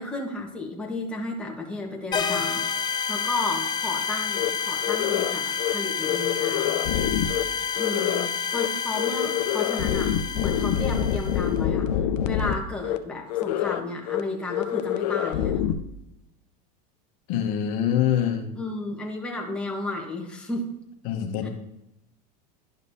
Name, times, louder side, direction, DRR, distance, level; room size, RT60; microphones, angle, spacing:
voice 1, 0.0-6.8 7.7-11.9 12.2-15.6 18.5-20.7 21.4-21.5, left 2 dB, 5° left, -1 dB, 1.1 m, -33 dB
sound 1, 2.1-11.5, left 6 dB, 20° left, 0.5 m, -29 dB
sound 2, 4.4-4.5 4.8-5.3 5.6-5.7 6.0-7.4 7.8-8.3 8.5-8.7 9.0-12.5 12.8-13.0 13.3-13.8 14.1-14.2 14.5-15.7, left 10 dB, 85° left, 0.6 m, -26 dB
voice 2, 17.3-18.5 21.0-21.5, left 10 dB, 65° left, 4 dB, 1.0 m, -24 dB
11.0 x 5.3 x 2.7 m, 0.85 s
supercardioid pair, 130°, 20 cm